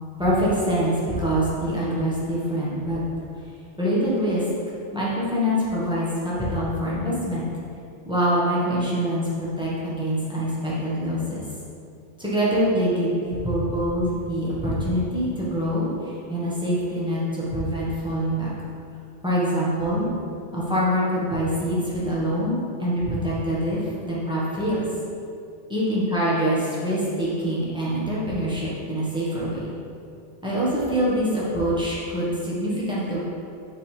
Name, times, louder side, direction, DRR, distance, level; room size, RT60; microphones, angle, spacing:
voice 1, 0.2-3.0 3.8-4.4 4.9-7.5 8.0-11.4 12.2-18.5 19.2-20.1 20.5-24.8 25.7-29.7 30.4-33.2, equal, 5° right, -8 dB, 1.4 m, -25 dB
5.7 x 5.5 x 3.4 m, 2.5 s
omnidirectional pair, 1.3 m